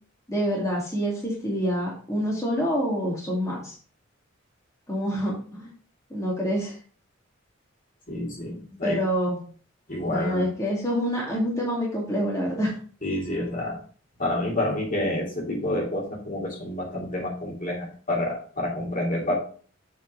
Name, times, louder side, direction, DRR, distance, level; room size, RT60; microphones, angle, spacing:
voice 1, 0.3-3.7 4.9-5.7 6.1-6.8 8.8-9.4 10.1-12.8, equal, 15° left, -5 dB, 2.1 m, -27 dB
voice 2, 8.1-9.0 9.9-10.5 13.0-13.8 14.2-19.3, left 1 dB, 40° left, -2 dB, 2.6 m, -28 dB
7.4 x 4.4 x 5.2 m, 0.42 s
head